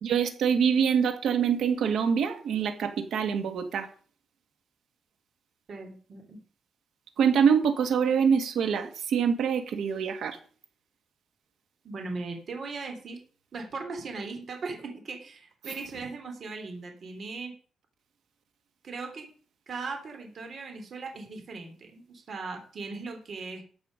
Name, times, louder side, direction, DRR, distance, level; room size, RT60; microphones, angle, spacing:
voice 1, 0.0-3.9 7.2-10.4, right 7 dB, 75° right, 7 dB, 2.0 m, -25 dB
voice 2, 5.7-6.4 11.8-13.2 13.5-17.5 18.8-19.3 19.7-23.6, right 3 dB, 45° right, 4 dB, 3.1 m, -38 dB
13.5 x 8.2 x 5.3 m, 0.43 s
wide cardioid pair, 150°, 0 cm